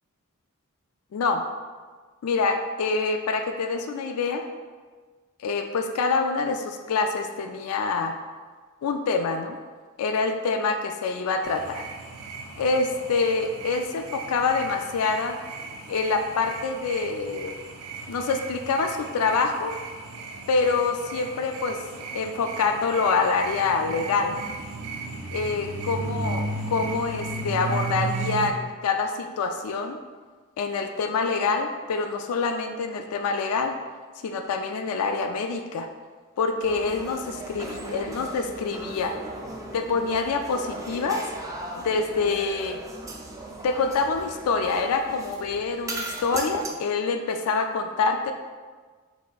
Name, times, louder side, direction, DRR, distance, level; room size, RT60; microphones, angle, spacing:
voice 1, 1.1-1.4 2.2-4.4 5.4-8.2 8.8-9.6 10.0-11.8 12.6-15.4 15.9-17.6 18.1-19.8 20.5-21.8 22.1-24.4 25.3-30.0 30.6-33.8 34.2-35.9 36.4-39.1 39.7-41.2 41.8-42.8 43.6-48.3, left 4 dB, 75° left, 6 dB, 0.3 m, -26 dB
sound 1, 11.4-28.5, right 3 dB, 85° right, 0.5 m, -35 dB
sound 2, 36.6-46.7, right 2 dB, 15° right, 0.3 m, -38 dB
4.2 x 4.1 x 2.3 m, 1.5 s
head